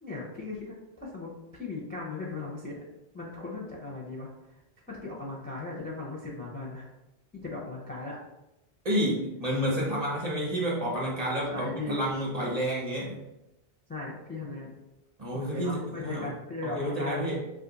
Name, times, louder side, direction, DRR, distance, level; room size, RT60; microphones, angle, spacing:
voice 1, 0.0-1.3 1.6-2.8 3.1-4.3 4.9-6.9 7.3-8.2 11.5-12.0 13.9-14.7 15.3-17.2, left 3 dB, 15° left, -3 dB, 0.4 m, -37 dB
voice 2, 8.8-13.2 15.2-16.3 16.6-17.4, equal, 45° right, -2 dB, 0.8 m, -30 dB
2.5 x 2.4 x 3.9 m, 0.92 s
omnidirectional pair, 1.0 m